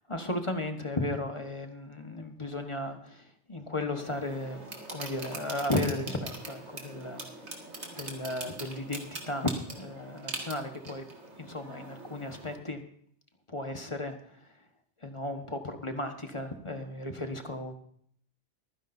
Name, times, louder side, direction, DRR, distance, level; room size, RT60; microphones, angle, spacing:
voice 1, 0.1-4.6 4.9-7.2 8.0-11.0 11.4-12.8 13.5-14.5 15.0-17.7, left 1 dB, 25° left, 5 dB, 1.3 m, -35 dB
sound 1, 4.0-12.6, right 2 dB, 65° right, 2.3 m, -43 dB
24.0 x 10.0 x 2.7 m, 0.65 s
omnidirectional pair, 1.2 m